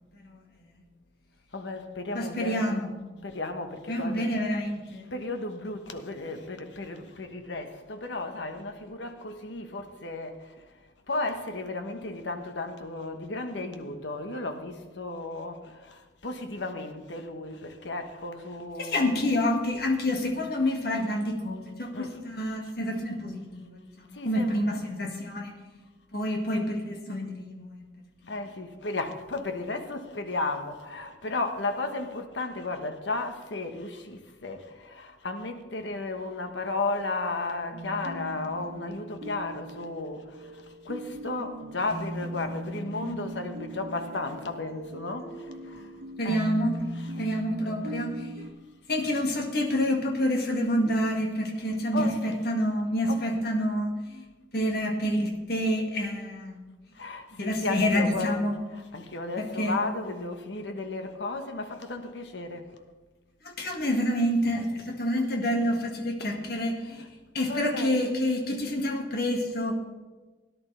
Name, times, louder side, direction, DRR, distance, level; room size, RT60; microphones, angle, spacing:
voice 1, 1.5-2.9 3.2-4.3 4.9-10.5 11.1-19.4 20.4-20.5 20.9-21.0 21.9-22.2 24.1-24.9 28.3-45.9 46.2-46.4 46.7-48.0 51.9-52.5 53.1-53.5 56.9-62.6 66.2-67.1 67.4-68.2, left 2 dB, 90° left, 1.3 m, -34 dB
voice 2, 2.1-2.9 3.9-5.0 18.8-25.6 26.1-27.8 46.2-46.7 47.2-48.5 48.9-54.2 54.5-56.7 57.4-58.6 59.4-59.8 63.5-67.0 67.3-69.7, equal, 60° left, 1.9 m, -28 dB
sound 1, 37.7-48.5, right 1 dB, 60° right, 1.4 m, -39 dB
17.5 x 11.0 x 3.4 m
head